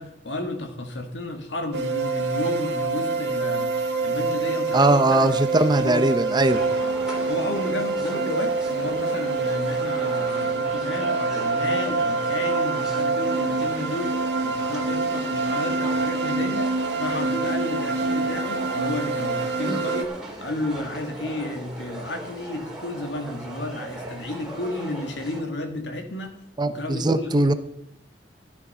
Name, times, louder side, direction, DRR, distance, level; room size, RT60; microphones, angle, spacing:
voice 1, 0.0-3.7 4.0-5.4 5.8-6.0 6.8-7.0 7.3-14.2 14.4-20.1 20.4-26.3 26.7-27.5, left 1 dB, 80° left, 5 dB, 2.1 m, -32 dB
sound 1, 1.7-20.0, right 3 dB, 70° right, 1.3 m, -26 dB
voice 2, 4.7-6.6 26.6-27.5, right 2 dB, 25° right, 10 dB, 0.8 m, -20 dB
sound 2, 6.5-25.4, right 1 dB, 5° right, 3.2 m, -38 dB
13.5 x 9.6 x 5.6 m, 0.77 s
head